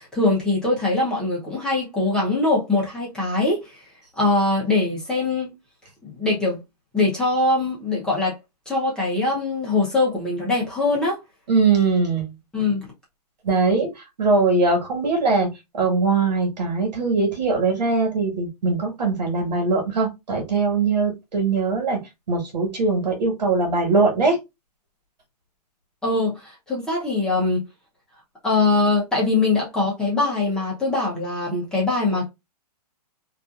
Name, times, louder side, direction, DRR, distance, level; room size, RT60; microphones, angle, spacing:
voice 1, 0.0-3.9 4.2-5.5 6.0-6.6 6.9-8.4 8.7-11.2 12.5-12.9 26.0-27.7 28.4-32.3, left 3 dB, 5° left, 0.7 m, -22 dB
voice 2, 11.5-12.3 13.4-15.5 15.7-22.0 22.3-24.4, right 3 dB, 90° right, 1.5 m, -21 dB
2.7 x 2.4 x 2.4 m
hypercardioid pair, 160°, 21 cm